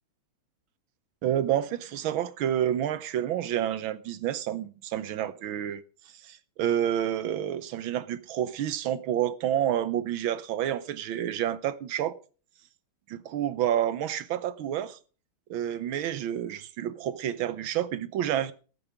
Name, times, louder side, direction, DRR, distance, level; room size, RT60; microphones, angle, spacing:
voice 1, 1.2-5.8 6.2-12.2 13.1-15.0 15.5-18.5, right 11 dB, 70° right, 1.5 m, -29 dB
14.0 x 9.3 x 5.0 m
omnidirectional pair, 2.4 m